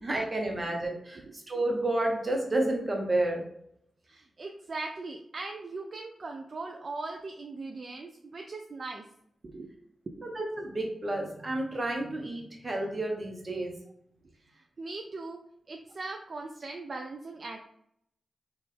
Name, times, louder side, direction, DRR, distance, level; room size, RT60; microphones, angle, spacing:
voice 1, 0.0-3.4 10.2-13.7, right 1 dB, 40° right, 1 dB, 1.0 m, -30 dB
voice 2, 4.0-9.0 9.4-9.7 10.1-10.3 14.5-15.4 15.7-17.7, right 3 dB, 55° right, 3 dB, 0.3 m, -40 dB
3.7 x 2.5 x 3.2 m, 0.72 s
cardioid pair, 60°, 0 cm